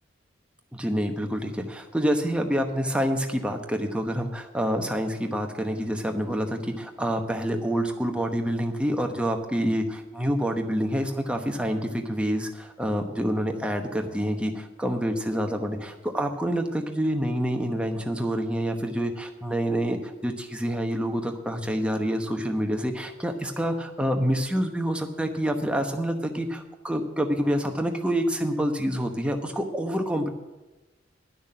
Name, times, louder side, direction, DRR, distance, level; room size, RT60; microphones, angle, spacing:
voice 1, 0.7-30.3, equal, 5° right, 4 dB, 1.0 m, -27 dB
11.0 x 6.3 x 8.7 m, 1.1 s
head